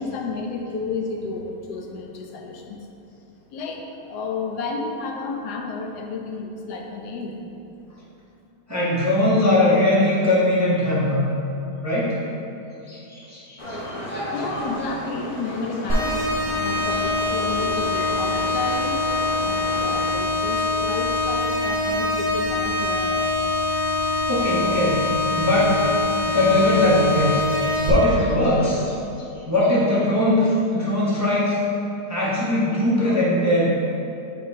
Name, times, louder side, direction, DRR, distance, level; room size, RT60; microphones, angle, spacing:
voice 1, 0.0-2.8 3.5-7.4 14.3-16.2 16.5-19.0 19.7-23.3, left 4 dB, 80° left, 2 dB, 1.2 m, -31 dB
voice 2, 8.7-11.3 11.8-12.2 12.9-14.2 24.3-25.1 25.3-25.8 26.3-31.6 32.1-33.6, left 1 dB, 15° right, -7 dB, 0.6 m, -21 dB
sound 1, 13.6-20.1, equal, 30° left, 0.7 m, -34 dB
sound 2, 15.9-27.9, left 2 dB, 40° right, 1.1 m, -24 dB
7.5 x 5.0 x 2.7 m, 2.8 s
omnidirectional pair, 1.7 m